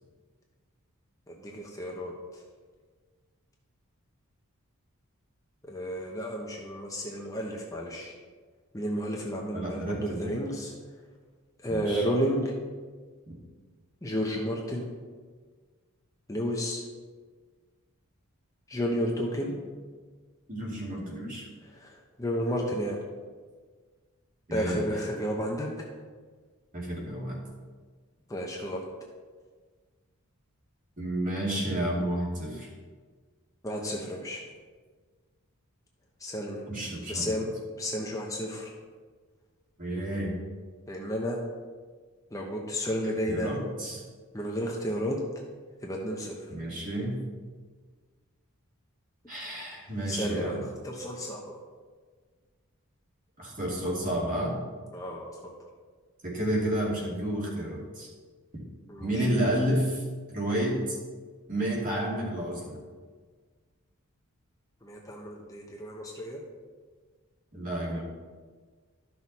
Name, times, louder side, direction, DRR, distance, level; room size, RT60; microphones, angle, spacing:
voice 1, 1.3-2.4 5.7-8.1 8.7-10.7 11.6-12.5 14.0-14.9 16.3-16.8 18.7-19.5 21.6-23.0 24.5-25.9 28.3-28.8 33.6-34.4 36.2-36.6 37.1-37.5 37.8-38.7 40.9-41.4 42.3-43.5 44.3-45.2 45.8-46.5 50.1-51.6 54.9-55.5 58.9-59.3 64.8-66.4, equal, 15° left, -1 dB, 0.9 m, -32 dB
voice 2, 9.5-10.3 11.7-12.0 20.5-21.5 24.5-24.8 26.7-27.4 31.0-32.7 36.7-37.3 39.8-40.3 43.3-44.0 46.5-47.2 49.3-50.6 53.4-54.5 56.2-58.1 58.5-58.6 59.0-60.0 60.3-61.0 61.5-62.8 67.5-68.0, right 1 dB, 40° right, -4 dB, 2.6 m, -30 dB
12.5 x 6.2 x 4.2 m, 1.5 s
head